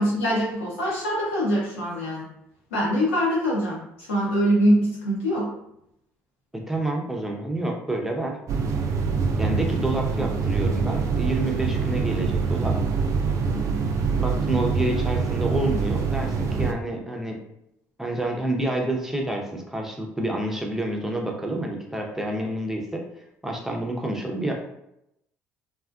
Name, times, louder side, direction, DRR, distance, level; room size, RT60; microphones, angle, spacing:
voice 1, 0.0-2.3 2.7-5.5, equal, 90° left, -6 dB, 1.0 m, -23 dB
voice 2, 6.7-8.4 9.4-12.8 14.2-17.4 18.0-23.0 23.4-24.5, right 1 dB, 5° right, 0 dB, 0.7 m, -28 dB
sound 1, 8.5-16.7, right 5 dB, 55° right, 0.4 m, -25 dB
2.7 x 2.4 x 2.4 m, 0.81 s
hypercardioid pair, 60°, 7 cm